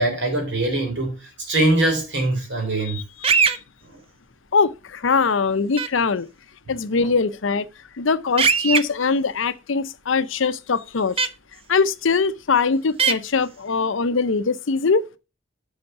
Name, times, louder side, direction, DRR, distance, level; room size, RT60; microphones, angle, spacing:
voice 1, 0.0-3.0 3.8-4.0 7.0-7.1, right 1 dB, 65° right, 3.6 m, -23 dB
voice 2, 2.9-3.6 4.5-6.3 6.7-7.7 8.0-11.3 11.7-15.1, left 4 dB, 80° left, 0.6 m, -22 dB
sound 1, 3.2-3.6 5.8-5.9 8.4-8.8 11.2-11.3 13.0-13.1, right 6 dB, 30° right, 0.5 m, -18 dB
7.9 x 5.8 x 5.7 m
head